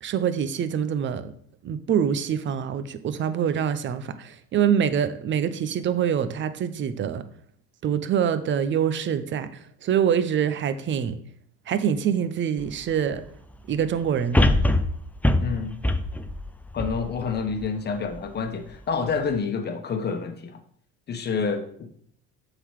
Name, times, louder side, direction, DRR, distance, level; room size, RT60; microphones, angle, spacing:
voice 1, 0.0-1.3 1.6-7.2 7.8-9.5 9.8-11.2 11.7-13.2 13.7-14.4, right 8 dB, 35° right, 12 dB, 0.7 m, -25 dB
sound 1, 12.6-12.7 14.3-17.7 18.2-18.3, left 1 dB, 5° left, 0.4 m, -23 dB
voice 2, 15.4-15.8 16.7-20.6 21.1-21.9, left 5 dB, 30° left, 6 dB, 1.2 m, -28 dB
7.9 x 4.0 x 6.5 m, 0.63 s
cardioid pair, 120°, 33 cm